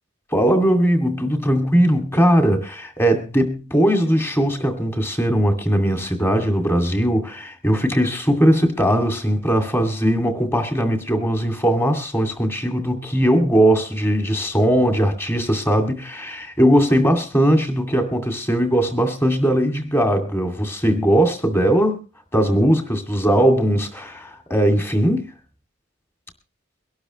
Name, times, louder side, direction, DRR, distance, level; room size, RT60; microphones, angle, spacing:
voice 1, 0.3-22.0 22.3-25.3, equal, 10° left, 2.3 m, -19 dB
23.0 x 12.0 x 3.1 m
head